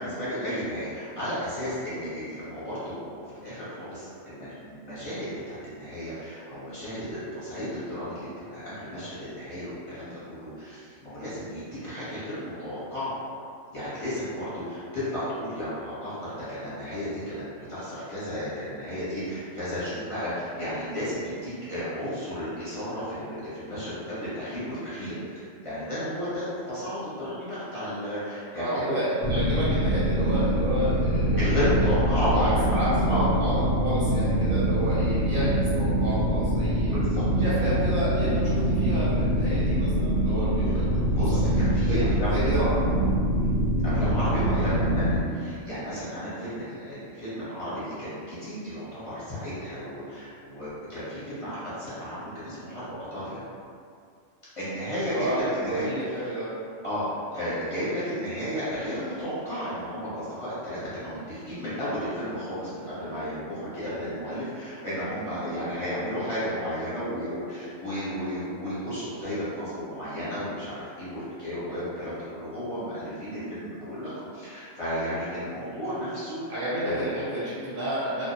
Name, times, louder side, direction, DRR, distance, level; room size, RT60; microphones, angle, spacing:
voice 1, 0.0-13.1 13.7-17.4 17.7-28.8 31.3-32.8 33.1-33.2 36.9-37.2 40.7-40.8 41.1-42.7 43.8-53.4 54.6-55.9 56.8-76.4 76.8-77.1, equal, 30° left, -12 dB, 0.8 m, -33 dB
voice 2, 28.6-31.4 32.3-36.9 37.3-41.5 41.9-42.0 42.3-42.7 43.9-44.1 44.5-44.7 55.1-56.5 75.6-75.7 76.5-78.3, right 1 dB, 50° right, -12 dB, 0.8 m, -31 dB
sound 1, 29.2-45.2, right 1 dB, 85° right, 1.0 m, -24 dB
2.2 x 2.0 x 2.7 m, 2.3 s
omnidirectional pair, 1.3 m